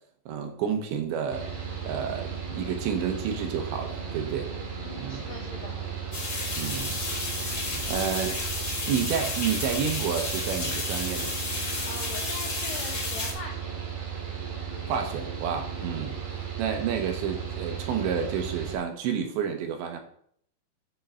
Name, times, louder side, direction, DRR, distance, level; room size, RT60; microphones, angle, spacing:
voice 1, 0.3-1.5 1.8-4.5 5.0-5.2 6.6-7.0 7.4-8.4 8.9-11.4 14.9-16.2 16.6-20.0, right 7 dB, 75° right, 6 dB, 3.0 m, -30 dB
Mechanical fan, 1.3-18.8, right 7 dB, 55° right, 1.8 m, -35 dB
voice 2, 4.8-5.8 11.8-13.7, left 3 dB, 80° left, 0 dB, 2.0 m, -41 dB
sound 1, 6.1-13.3, left 3 dB, 40° left, 1.1 m, -32 dB
10.5 x 3.6 x 6.7 m, 0.65 s
omnidirectional pair, 5.5 m